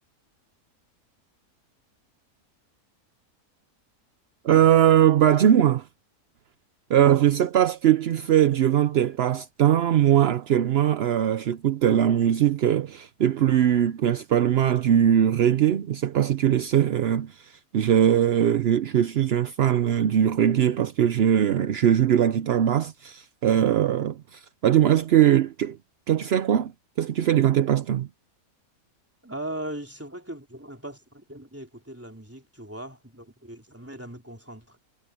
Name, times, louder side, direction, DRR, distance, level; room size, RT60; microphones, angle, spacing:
voice 1, 4.4-5.9 6.9-25.8 26.1-26.7 27.0-28.1, right 10 dB, 60° right, 0.7 m, -21 dB
voice 2, 29.2-34.8, right 1 dB, 10° right, 3.6 m, -39 dB
omnidirectional pair, 1.6 m